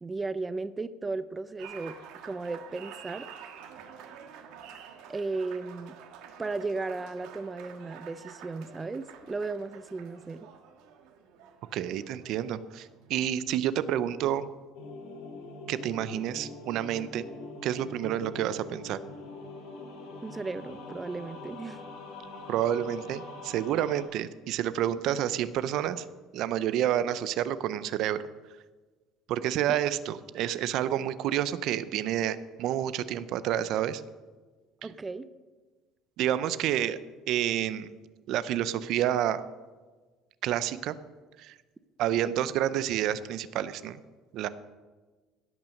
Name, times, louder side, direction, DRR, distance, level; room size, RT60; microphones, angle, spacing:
voice 1, 0.0-2.0 2.2-3.3 5.1-5.9 6.4-10.5 20.2-21.8 34.8-35.3, right 3 dB, 15° right, 13 dB, 0.5 m, -35 dB
Applause, 1.6-13.3, right 8 dB, 80° right, 1.6 m, -49 dB
voice 2, 11.7-14.5 15.7-17.3 17.6-19.0 22.5-26.1 26.3-28.2 29.3-34.0 36.2-37.0 37.3-37.9 38.3-39.4 40.4-40.9 41.4-41.6 42.0-44.0 44.3-44.5, right 11 dB, 60° right, 15 dB, 0.6 m, -29 dB
sound 1, 14.7-24.0, left 2 dB, 85° left, 2.6 m, -43 dB
17.0 x 6.0 x 6.4 m, 1.3 s
cardioid pair, 125°, 0 cm